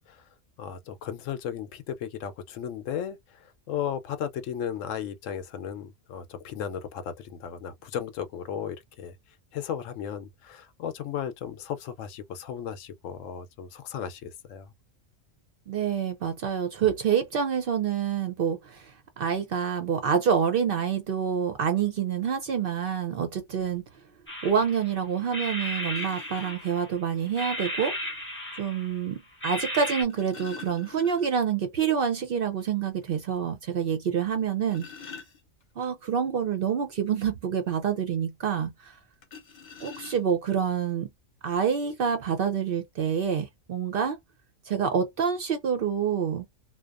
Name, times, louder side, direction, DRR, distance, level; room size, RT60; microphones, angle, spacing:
voice 1, 0.6-9.2 9.5-14.7, left 9 dB, 80° left, 0.9 m, -35 dB
voice 2, 15.7-23.8 24.4-27.9 28.6-34.9 35.8-39.0 39.8-41.1 41.4-44.2 44.6-46.5, right 7 dB, 60° right, 0.6 m, -27 dB
sound 1, 24.3-24.9 25.3-27.0 27.4-29.0 29.4-30.0, equal, 15° left, 0.5 m, -35 dB
sound 2, 25.9-26.5 27.9-28.0 29.8-31.6 31.9-32.0 32.4-32.5 33.0-33.1 34.3-35.9 39.2-40.6 41.4-41.5 41.9-42.1, left 6 dB, 40° left, 0.8 m, -46 dB
2.5 x 2.2 x 2.3 m
omnidirectional pair, 1.3 m